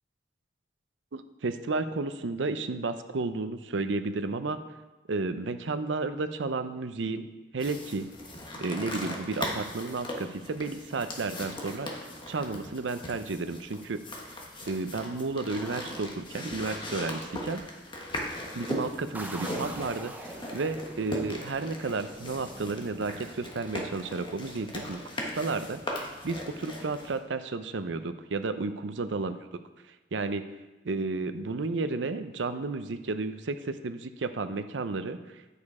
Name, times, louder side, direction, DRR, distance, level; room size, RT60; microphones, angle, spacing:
voice 1, 1.1-4.6 5.1-8.1 8.6-11.9 12.3-14.0 14.7-17.6 18.5-25.0 25.3-29.3 30.1-30.5 30.8-35.2, right 3 dB, 80° right, 10 dB, 0.6 m, -32 dB
sound 1, 7.6-27.2, left 1 dB, 25° left, 1.3 m, -39 dB
sound 2, 19.1-23.7, right 1 dB, 10° right, 0.8 m, -44 dB
9.6 x 6.8 x 4.8 m, 1.1 s
head